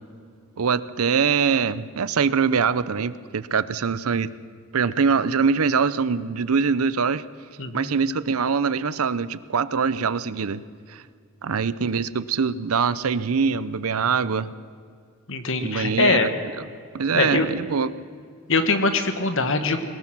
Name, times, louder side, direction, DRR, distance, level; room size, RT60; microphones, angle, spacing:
voice 1, 0.6-4.3 4.7-7.2 7.7-10.6 10.9-11.0 11.4-14.5 15.6-16.3 16.9-17.9, right 5 dB, 80° right, 16 dB, 0.7 m, -23 dB
voice 2, 15.3-16.3 17.1-17.5 18.5-19.8, left 3 dB, 65° left, 8 dB, 1.7 m, -22 dB
22.0 x 19.0 x 6.1 m, 2.2 s
head